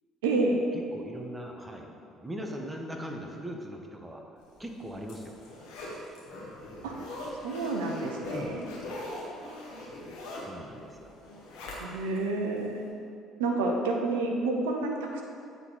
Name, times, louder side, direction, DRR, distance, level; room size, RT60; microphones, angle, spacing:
voice 1, 0.2-0.6 6.8-6.9 7.4-8.7 11.8-12.9 13.4-15.2, right 3 dB, 80° right, 1 dB, 0.6 m, -29 dB
voice 2, 0.9-4.2 4.6-5.4 8.3-8.5 10.4-11.2, equal, 15° right, 2 dB, 1.0 m, -40 dB
Zipper (clothing), 4.6-12.2 12.6-12.7, left 1 dB, 75° left, 1.3 m, -41 dB
8.3 x 3.9 x 4.5 m, 2.4 s
hypercardioid pair, 55°, 0 cm